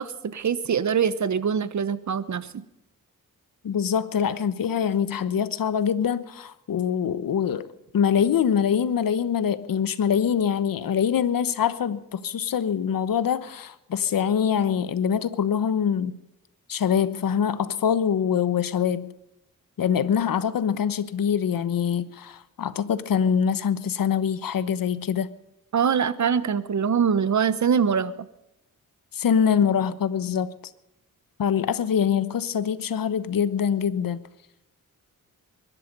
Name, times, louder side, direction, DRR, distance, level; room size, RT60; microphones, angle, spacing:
voice 1, 0.0-2.6 25.7-28.3, right 7 dB, 55° right, 1.1 m, -23 dB
voice 2, 3.6-7.7 7.9-16.1 16.7-19.1 19.8-25.3 29.1-30.5 31.4-34.2, left 8 dB, 75° left, 1.1 m, -24 dB
22.0 x 12.0 x 5.4 m
cardioid pair, 85°, 34 cm